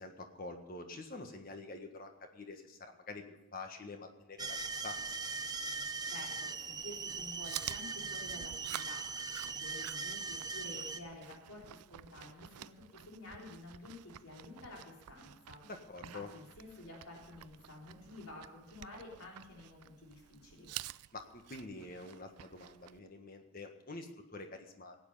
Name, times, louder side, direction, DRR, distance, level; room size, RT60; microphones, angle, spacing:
voice 1, 0.0-4.6 4.8-5.3 15.6-16.3 21.1-25.0, left 3 dB, 40° left, 5 dB, 1.6 m, -47 dB
sound 1, 4.4-11.0, right 4 dB, 15° right, 0.6 m, -40 dB
voice 2, 6.1-15.7 16.0-20.7, left 2 dB, 80° left, -1 dB, 3.4 m, -51 dB
Chewing mastication, 7.1-23.0, right 13 dB, 90° right, 0.4 m, -50 dB
17.0 x 9.1 x 5.6 m, 0.96 s
head